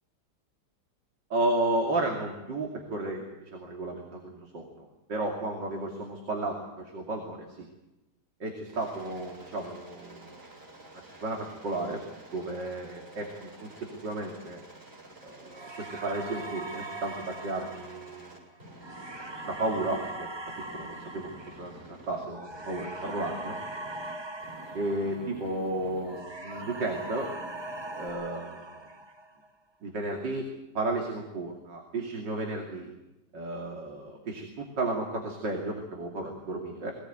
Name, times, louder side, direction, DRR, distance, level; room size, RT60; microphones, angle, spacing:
voice 1, 1.3-7.7 8.4-10.4 10.9-12.0 12.3-14.6 15.2-18.4 19.2-20.3 20.7-23.6 24.7-27.3 27.9-28.8 29.8-30.5 30.8-32.9 33.3-36.9, right 2 dB, 90° right, 1 dB, 3.4 m, -33 dB
Aircraft, 8.7-20.2 20.5-22.2 22.5-24.1 24.4-26.2 26.5-28.1, right 2 dB, 35° right, 7.3 m, -50 dB
sound 1, 15.5-25.7 26.0-29.5, right 2 dB, 20° right, 0.9 m, -41 dB
22.5 x 18.0 x 9.3 m, 0.99 s
omnidirectional pair, 1.9 m